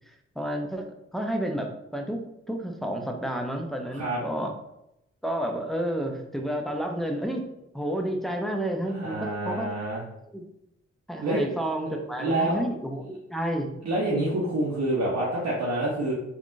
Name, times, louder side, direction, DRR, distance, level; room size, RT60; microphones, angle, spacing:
voice 1, 0.1-0.8 1.1-2.2 2.5-4.5 5.2-7.4 7.7-9.7 10.3-10.4 11.1-13.7, right 1 dB, ahead, 3 dB, 0.5 m, -30 dB
voice 2, 8.9-10.0 11.2-11.5 12.2-12.6 13.8-16.1, right 1 dB, 65° right, -6 dB, 0.8 m, -27 dB
3.5 x 2.3 x 2.5 m, 0.84 s
supercardioid pair, 40°, 29 cm